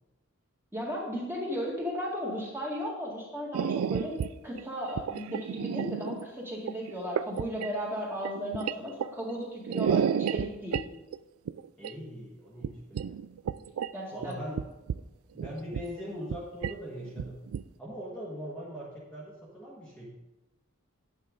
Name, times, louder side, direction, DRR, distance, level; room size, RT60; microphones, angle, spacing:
voice 1, 0.7-4.1 4.4-10.8 13.9-14.4, equal, 10° right, -3 dB, 2.0 m, -35 dB
sound 1, 3.5-4.3 4.6-6.3 6.5-7.7 8.2-9.3 9.7-10.8 11.1-11.2 11.5-11.9 12.6-12.7 12.9-13.9 14.2-14.3 14.6-15.0 15.4-16.0 16.3-16.4 16.6-16.7 17.0-17.6, right 8 dB, 90° right, 0.3 m, -31 dB
voice 2, 11.8-13.2 14.1-14.6 15.3-17.4 17.8-20.1, equal, 5° left, -7 dB, 1.5 m, -41 dB
9.7 x 8.9 x 3.8 m, 1.0 s
head